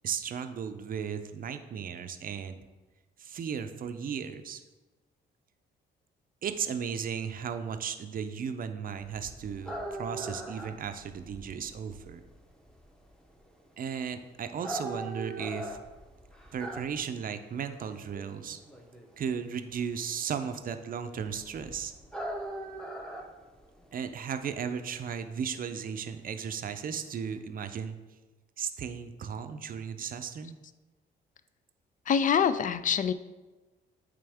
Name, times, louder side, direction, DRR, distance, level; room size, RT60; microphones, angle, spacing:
voice 1, 0.0-2.6 3.2-4.6 6.4-12.2 13.8-15.8 16.5-18.6 19.2-21.9 23.9-28.0 28.6-30.6, right 7 dB, 45° right, 9 dB, 0.5 m, -35 dB
sound 1, 9.0-27.4, right 1 dB, 5° left, 0.8 m, -42 dB
voice 2, 32.1-33.1, left 7 dB, 40° left, 13 dB, 0.4 m, -25 dB
8.7 x 3.4 x 3.5 m, 1.2 s
cardioid pair, 90°, 20 cm